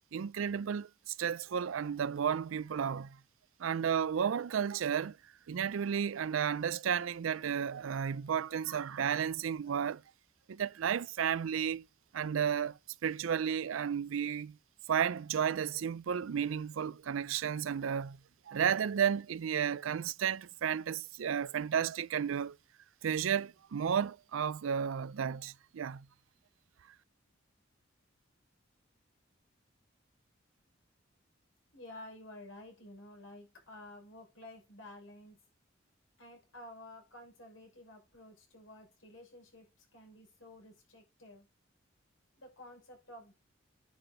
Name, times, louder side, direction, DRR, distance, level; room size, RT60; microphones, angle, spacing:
voice 1, 0.1-3.2 3.6-5.2 5.5-10.0 10.5-11.8 12.1-14.6 14.9-18.2 18.5-22.6 23.0-26.1, right 8 dB, 90° right, 0.4 m, -33 dB
voice 2, 31.7-35.4 36.2-41.5 42.3-43.3, left 1 dB, 85° left, 6.1 m, -52 dB
10.5 x 5.9 x 3.9 m
head